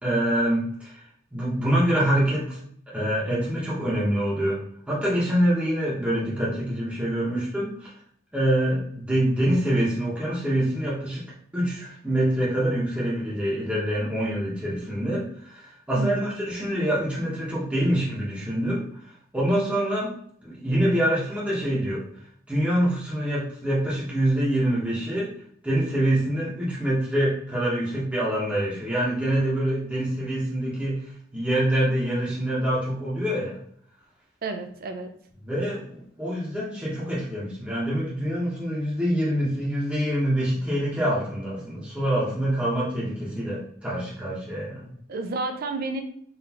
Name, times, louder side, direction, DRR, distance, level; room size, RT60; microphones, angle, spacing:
voice 1, 0.0-2.6 2.9-4.6 4.9-7.9 8.3-11.3 11.5-20.1 20.4-22.1 22.5-25.3 25.6-33.6 35.4-44.9, right 1 dB, 5° right, -7 dB, 1.0 m, -25 dB
voice 2, 16.0-16.4 34.4-35.1 45.1-46.0, right 3 dB, 50° right, 6 dB, 0.5 m, -31 dB
3.9 x 3.1 x 2.9 m, 0.62 s
head